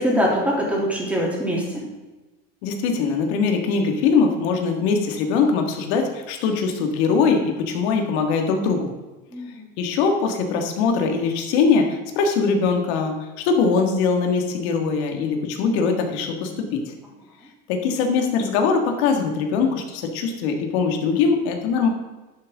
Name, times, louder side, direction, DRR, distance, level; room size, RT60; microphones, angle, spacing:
voice 1, 0.0-1.9 9.3-9.7, equal, 5° right, -3 dB, 2.9 m, -23 dB
voice 2, 2.6-8.9 9.8-16.9 17.7-21.9, left 5 dB, 70° left, 4 dB, 1.9 m, -22 dB
11.0 x 7.5 x 3.6 m, 1.2 s
supercardioid pair, 130°, 33 cm